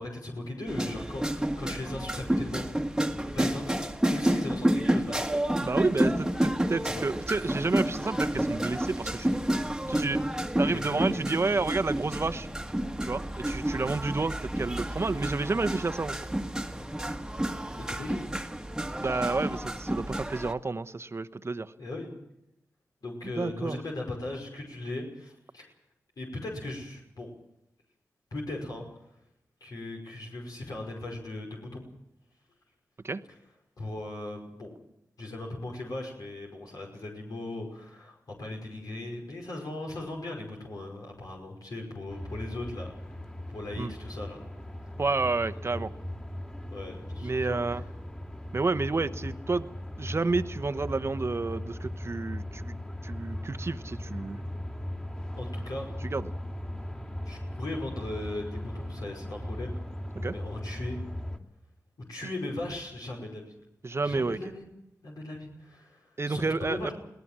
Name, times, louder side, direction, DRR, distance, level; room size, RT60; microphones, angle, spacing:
voice 1, 0.0-2.7 3.3-5.3 6.1-6.2 7.0-7.1 10.7-11.1 17.7-18.3 21.8-22.1 23.0-25.7 26.2-27.3 28.3-28.9 29.6-31.8 33.8-34.7 35.2-44.4 44.8-44.9 45.7-45.9 46.7-47.8 55.4-56.0 57.3-59.8 60.3-61.0 62.1-63.5 64.0-64.7 65.0-66.9, left 2 dB, 70° left, -1 dB, 5.4 m, -38 dB
sound 1, 0.7-20.5, right 1 dB, 10° right, 1.6 m, -30 dB
voice 2, 5.6-6.1 6.4-9.4 9.9-10.2 10.6-12.5 13.0-16.2 19.0-21.7 23.2-23.8 33.0-33.2 43.8-43.9 45.0-45.9 47.2-47.8 48.5-49.7 50.0-52.8 53.0-54.4 56.1-56.3 60.2-60.4 63.8-64.4 66.2-66.9, right 3 dB, 40° right, 11 dB, 1.0 m, -30 dB
sound 2, 42.1-61.4, left 1 dB, 20° left, 3.0 m, -38 dB
22.0 x 18.5 x 7.5 m, 0.83 s
cardioid pair, 45°, 7 cm